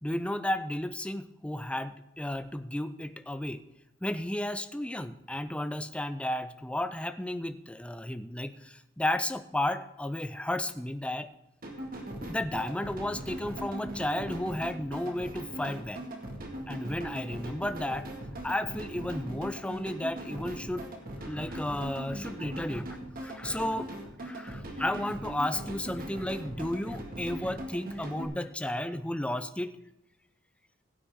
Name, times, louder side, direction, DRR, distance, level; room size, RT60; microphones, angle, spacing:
voice 1, 0.0-3.6 4.0-11.3 12.2-16.0 16.7-18.1 18.4-20.9 21.2-23.0 23.2-23.9 24.2-29.7, left 1 dB, 5° left, 11 dB, 0.5 m, -33 dB
sound 1, 11.6-28.2, right 1 dB, 50° right, 2.0 m, -40 dB
16.0 x 8.9 x 3.7 m, 0.89 s
head